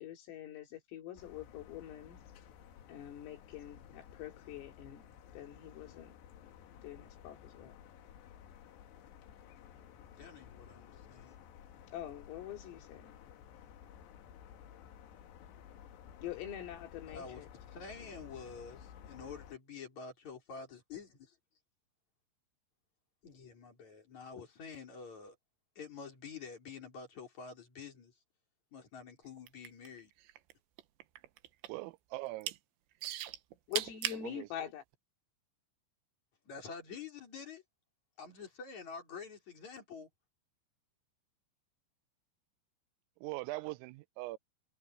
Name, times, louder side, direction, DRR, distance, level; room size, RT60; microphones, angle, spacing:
voice 1, 0.0-2.2 2.9-5.1 5.3-6.1 6.8-7.8 11.9-13.2 16.2-17.5 18.0-18.1 33.7-34.8, left 11 dB, 90° left, 6.0 m, -45 dB
sound 1, 1.2-19.6, left 9 dB, 65° left, 3.7 m, -55 dB
voice 2, 10.2-11.4 17.1-21.3 23.2-25.4 25.8-28.1 28.7-30.1 36.5-37.6 38.2-40.1, left 5 dB, 35° left, 5.5 m, -48 dB
sound 2, 29.4-30.5 30.8-31.9 32.2-32.6 33.0-34.2 34.9-35.0, right 14 dB, 70° right, 3.1 m, -37 dB
voice 3, 31.7-32.5 34.2-34.7 43.2-44.4, right 21 dB, 90° right, 3.3 m, -41 dB
omnidirectional pair, 5.8 m